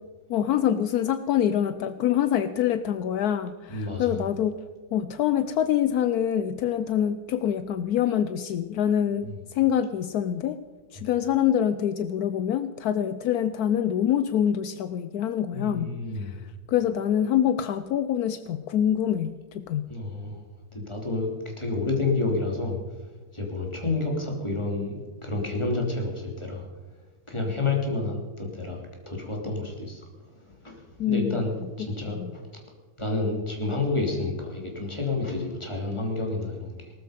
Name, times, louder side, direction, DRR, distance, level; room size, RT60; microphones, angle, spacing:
voice 1, 0.3-4.6 4.9-10.6 10.9-15.9 16.2-19.9 31.0-31.5 31.8-31.9 32.1-32.4, left 10 dB, 75° left, 12 dB, 0.9 m, -25 dB
voice 2, 3.7-4.1 9.2-9.3 11.0-11.1 15.5-16.3 19.9-20.4 20.7-22.8 23.3-26.7 27.3-30.0 30.4-31.5 31.8-32.4 33.0-36.9, left 3 dB, 15° left, 0 dB, 3.1 m, -29 dB
19.0 x 13.0 x 5.2 m, 1.3 s
omnidirectional pair, 2.3 m